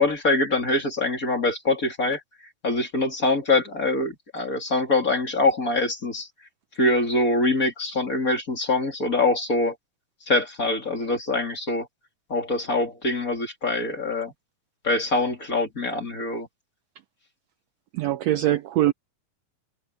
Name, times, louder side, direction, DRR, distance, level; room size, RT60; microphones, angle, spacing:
voice 1, 0.0-2.2 2.6-6.3 6.8-9.7 10.3-11.9 12.3-14.3 14.8-16.5, left 2 dB, 25° left, 3.2 m, -24 dB
voice 2, 17.9-18.9, right 13 dB, 85° right, 1.4 m, -22 dB
omnidirectional pair, 3.8 m